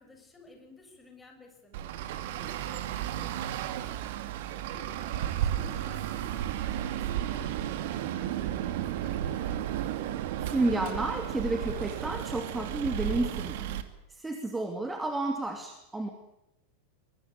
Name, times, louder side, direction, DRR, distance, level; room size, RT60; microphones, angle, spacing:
voice 1, 0.0-9.7 14.7-14.9, left 1 dB, 10° left, 4 dB, 7.1 m, -54 dB
Traffic noise roadway noise, 1.7-13.8, right 11 dB, 50° right, 2.2 m, -33 dB
voice 2, 10.4-13.7 14.1-16.1, right 2 dB, 10° right, 5 dB, 2.6 m, -31 dB
23.0 x 22.5 x 9.1 m, 0.86 s
figure-of-eight pair, 90°, 0 cm